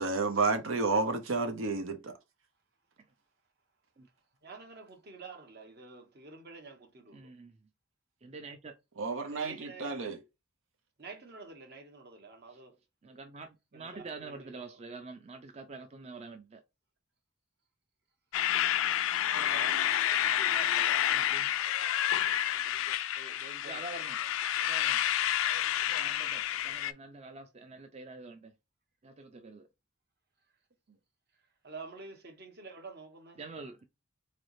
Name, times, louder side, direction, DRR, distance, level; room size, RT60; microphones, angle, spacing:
voice 1, 0.0-2.1 9.0-10.2, right 3 dB, 90° right, 0.7 m, -30 dB
voice 2, 4.4-7.3 9.3-10.1 11.0-12.8 13.7-14.8 19.3-21.4 22.5-24.0 24.6-24.8 25.9-26.2 31.6-33.4, right 4 dB, 55° right, 1.1 m, -49 dB
voice 3, 7.1-7.6 8.2-8.7 12.5-12.6 13.0-16.6 21.1-21.5 23.6-24.2 24.6-25.0 26.0-28.5 29.0-29.7 33.4-33.8, right 3 dB, 35° right, 0.5 m, -46 dB
sound 1, 18.3-26.9, left 11 dB, 90° left, 0.4 m, -29 dB
4.0 x 3.3 x 2.6 m
head